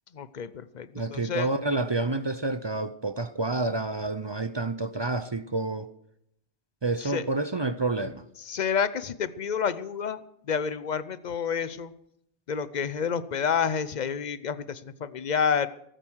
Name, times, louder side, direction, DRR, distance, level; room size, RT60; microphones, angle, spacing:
voice 1, 0.1-1.5 7.0-7.2 8.5-11.9 12.5-15.7, left 7 dB, 45° left, 0.7 m, -29 dB
voice 2, 0.9-5.9 6.8-8.2, right 2 dB, 30° right, 0.5 m, -29 dB
18.5 x 9.1 x 6.3 m
omnidirectional pair, 1.1 m